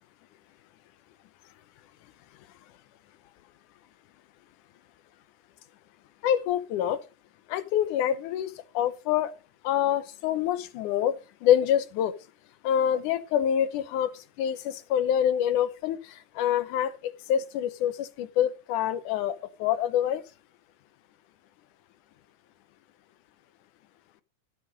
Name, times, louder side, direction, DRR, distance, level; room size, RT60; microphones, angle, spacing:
voice 1, 6.2-7.0 7.5-9.3 9.6-12.1 12.6-14.1 14.4-20.2, left 10 dB, 85° left, 2.3 m, -26 dB
15.0 x 5.5 x 5.0 m
omnidirectional pair, 3.6 m